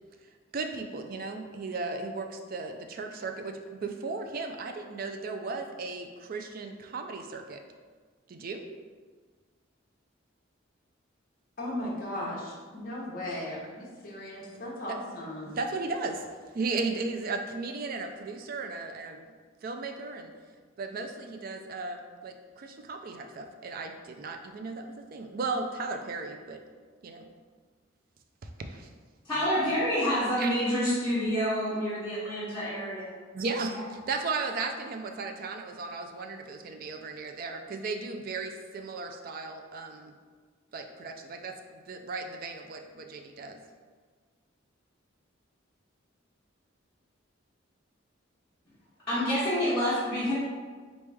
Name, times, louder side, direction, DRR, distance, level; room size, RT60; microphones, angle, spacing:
voice 1, 0.5-7.6 8.3-8.7 14.9-15.0 15.6-16.3 16.5-19.3 19.6-20.3 20.8-26.6 27.0-27.3 28.4-28.9 30.4-30.5 33.3-40.1 40.7-43.6, right 3 dB, 45° right, 5 dB, 0.4 m, -36 dB
voice 2, 11.6-15.6, left 1 dB, 45° left, -4 dB, 1.0 m, -37 dB
voice 3, 29.2-33.1 49.1-50.3, equal, 15° left, -15 dB, 1.5 m, -28 dB
4.0 x 3.2 x 3.4 m, 1.5 s
head